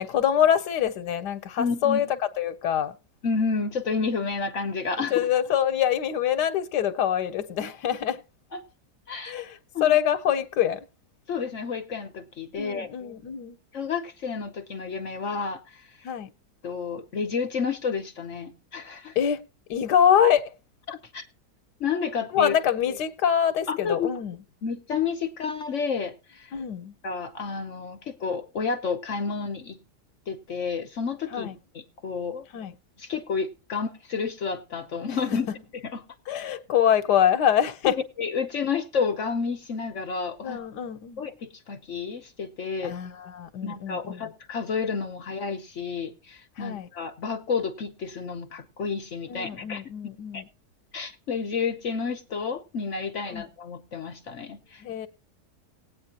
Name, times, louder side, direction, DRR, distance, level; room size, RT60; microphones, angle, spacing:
voice 1, 0.0-2.9 5.1-8.2 9.2-10.8 12.6-13.6 16.0-16.3 19.2-19.4 19.7-20.5 22.3-24.4 26.5-26.9 31.3-31.5 32.5-32.7 35.1-35.4 36.3-38.0 40.4-41.2 42.8-44.3 46.6-46.9 49.3-50.5 53.3-53.4 54.8-55.1, left 9 dB, 85° left, 1.3 m, -25 dB
voice 2, 1.6-2.0 3.2-5.3 8.5-8.6 9.1-9.4 9.7-9.9 11.3-12.9 13.7-16.1 16.6-19.2 20.9-21.3 21.8-22.6 23.7-24.1 24.6-26.5 27.0-29.8 30.3-31.5 31.7-32.5 33.0-35.5 35.8-36.0 38.2-40.6 41.2-42.9 43.6-49.8 50.3-50.4 50.9-54.8, left 5 dB, 55° left, 1.0 m, -30 dB
19.0 x 8.6 x 2.8 m
omnidirectional pair, 1.7 m